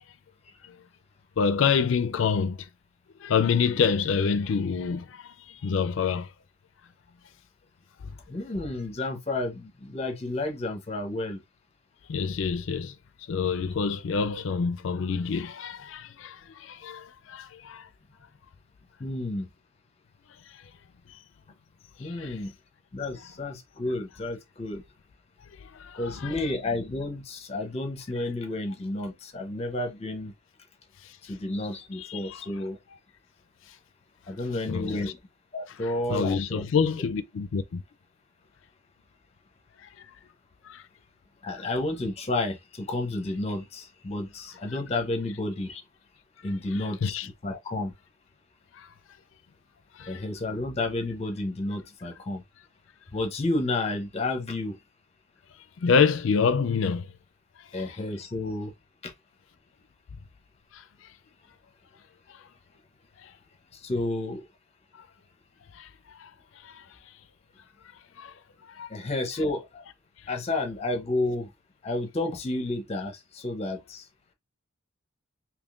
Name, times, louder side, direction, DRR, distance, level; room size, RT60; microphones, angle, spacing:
voice 1, 1.4-2.7 3.2-6.3 8.0-8.1 12.1-12.9 13.3-17.9 20.5-20.6 22.0-22.4 25.6-26.3 32.0-32.4 34.7-35.1 35.7-35.8 36.1-37.8 39.8-40.1 40.6-40.8 47.0-47.3 48.8-48.9 50.0-50.2 55.8-57.1 57.7-57.9 60.7-60.8 62.3-62.4 63.2-63.3 65.7-65.9 66.2-66.3 66.6-66.8 68.2-68.3 68.7-68.9, left 5 dB, 65° left, 0.4 m, -27 dB
voice 2, 8.3-11.4 19.0-19.5 22.0-22.5 22.9-24.8 25.9-30.3 31.3-32.8 34.3-35.2 35.5-36.6 41.4-45.8 46.4-47.9 50.0-52.4 53.1-54.8 57.7-58.7 59.0-59.1 63.7-64.5 68.9-69.8 70.3-71.5 71.8-74.1, left 2 dB, 30° left, 0.7 m, -31 dB
3.5 x 2.9 x 2.4 m
head